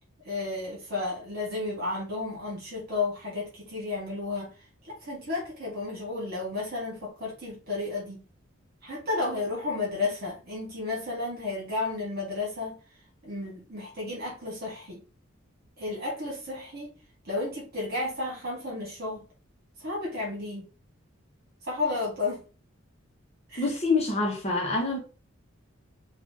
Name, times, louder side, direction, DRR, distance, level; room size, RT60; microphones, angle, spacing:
voice 1, 0.2-4.5 5.0-8.2 8.8-12.8 13.2-15.0 15.8-16.9 17.2-19.2 19.8-20.7 21.6-22.4 23.5-23.6, left 3 dB, 50° right, 1.6 m, -32 dB
voice 2, 23.6-25.0, left 3 dB, 35° left, 1.2 m, -26 dB
4.2 x 2.6 x 2.9 m
head